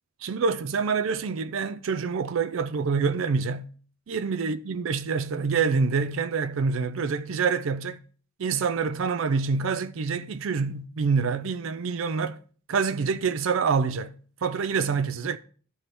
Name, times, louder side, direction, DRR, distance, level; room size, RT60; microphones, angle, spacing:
voice 1, 0.2-3.7 4.1-8.0 8.4-12.4 12.7-14.1 14.4-15.4, right 5 dB, 70° right, 0.4 m, -26 dB
12.0 x 4.2 x 3.3 m
head